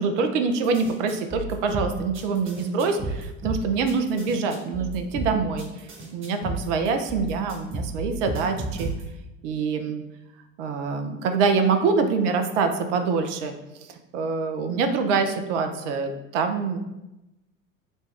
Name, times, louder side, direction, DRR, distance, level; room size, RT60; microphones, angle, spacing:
voice 1, 0.0-5.7 6.1-8.9 9.4-10.0 10.6-13.5 13.9-16.8, right 4 dB, 60° right, 6 dB, 0.6 m, -25 dB
sound 1, 0.6-9.3, right 2 dB, 30° right, 1.3 m, -33 dB
6.5 x 2.3 x 3.3 m, 0.96 s
figure-of-eight pair, 70°, 42 cm